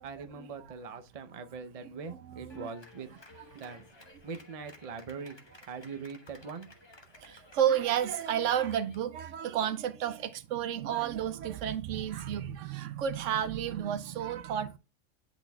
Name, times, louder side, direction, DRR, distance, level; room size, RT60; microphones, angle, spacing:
voice 1, 0.0-3.1 3.5-3.9 4.2-6.8, right 5 dB, 40° right, 0.6 m, -42 dB
voice 2, 2.1-2.7 3.5-3.6 7.2-14.8, right 9 dB, 75° right, 0.9 m, -31 dB
Clapping, 2.5-9.0, left 2 dB, 25° left, 1.0 m, -55 dB
10.5 x 4.1 x 2.2 m
omnidirectional pair, 1.3 m